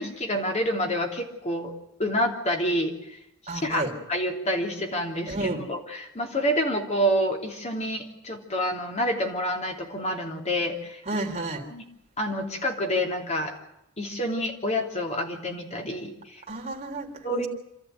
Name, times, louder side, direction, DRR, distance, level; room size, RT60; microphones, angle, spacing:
voice 1, 0.0-1.7 2.0-2.9 3.5-11.2 11.7-11.8 12.2-13.5 14.0-16.4 17.2-17.5, equal, 30° left, 2 dB, 3.2 m, -28 dB
voice 2, 3.5-3.9 5.3-5.6 11.1-11.6 16.5-17.5, right 2 dB, 30° right, -1 dB, 3.5 m, -31 dB
27.5 x 13.5 x 9.3 m, 0.83 s
head